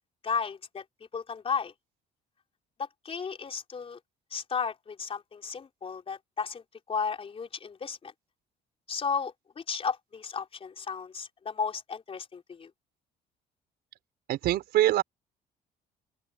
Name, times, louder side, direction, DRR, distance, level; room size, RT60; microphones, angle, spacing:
voice 1, 0.2-0.8 1.1-1.7 2.8-4.0 4.3-6.6 6.9-8.1 8.9-12.7, left 6 dB, 35° left, 3.7 m, -34 dB
voice 2, 14.3-15.0, right 13 dB, 75° right, 4.7 m, -24 dB
open air
cardioid pair, 110°, 17 cm